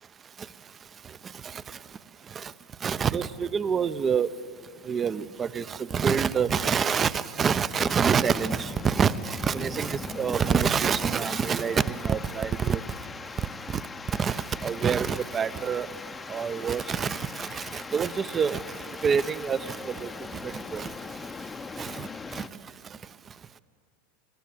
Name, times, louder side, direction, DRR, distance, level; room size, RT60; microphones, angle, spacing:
voice 1, 2.8-4.3 4.8-12.8 13.7-13.8 14.2-15.9 16.3-18.6 19.0-20.1 20.4-20.9 21.8-22.4, right 6 dB, 25° right, 16 dB, 0.7 m, -27 dB
sound 1, 7.7-22.5, left 4 dB, 20° left, 0.8 m, -40 dB
26.5 x 13.0 x 9.6 m, 2.3 s
figure-of-eight pair, 85°, 0 cm